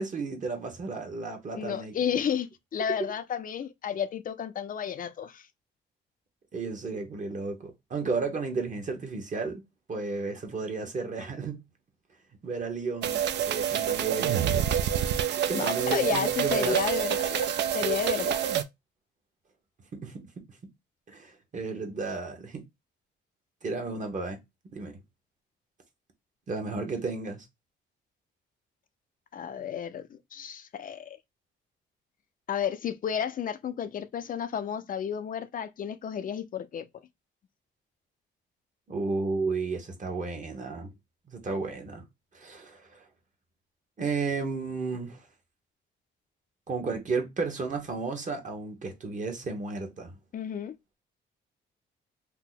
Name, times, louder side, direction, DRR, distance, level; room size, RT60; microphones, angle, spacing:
voice 1, 0.0-1.9 6.5-9.6 9.9-11.6 12.4-14.6 15.0-15.1 15.5-16.8 19.9-20.3 21.1-22.6 23.6-24.4 24.7-24.9 26.5-27.4 38.9-40.9 41.3-42.0 42.3-43.0 44.0-45.2 46.7-50.1, right 4 dB, 40° right, 1.0 m, -33 dB
voice 2, 1.6-5.5 15.5-18.4 29.3-31.2 32.5-36.9 50.3-50.8, left 8 dB, 45° left, 0.4 m, -32 dB
sound 1, 13.0-18.6, right 9 dB, 65° right, 0.4 m, -27 dB
2.8 x 2.0 x 3.7 m
cardioid pair, 90°, 20 cm